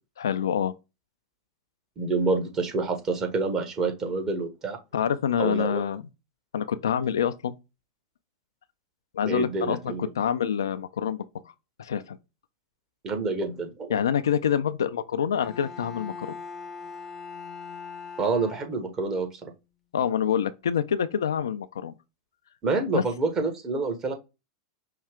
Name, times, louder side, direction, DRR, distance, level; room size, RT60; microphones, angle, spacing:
voice 1, 0.2-0.7 4.9-6.0 6.5-7.5 9.1-11.2 11.8-12.2 13.9-16.3 19.9-21.9 22.9-23.0, left 8 dB, 75° left, 0.4 m, -26 dB
voice 2, 2.0-4.8 5.4-5.8 9.2-10.1 13.0-14.0 18.2-19.5 22.6-24.1, right 3 dB, 30° right, 1.4 m, -27 dB
Bowed string instrument, 15.4-19.1, left 5 dB, 15° left, 0.8 m, -41 dB
5.4 x 2.4 x 3.6 m
figure-of-eight pair, 95°, 2 cm